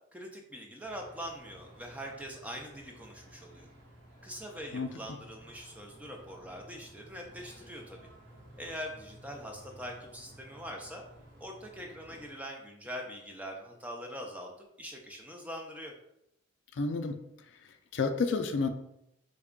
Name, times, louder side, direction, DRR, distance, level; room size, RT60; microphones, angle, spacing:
voice 1, 0.1-3.7 4.2-8.1 8.6-11.0 11.4-14.5 14.8-15.9, equal, 5° right, 1 dB, 0.4 m, -43 dB
sound 1, 0.8-12.3, right 1 dB, 60° right, 1.0 m, -54 dB
voice 2, 16.7-17.2 17.9-18.7, left 4 dB, 65° left, 6 dB, 0.3 m, -30 dB
3.4 x 2.2 x 3.7 m, 0.79 s
head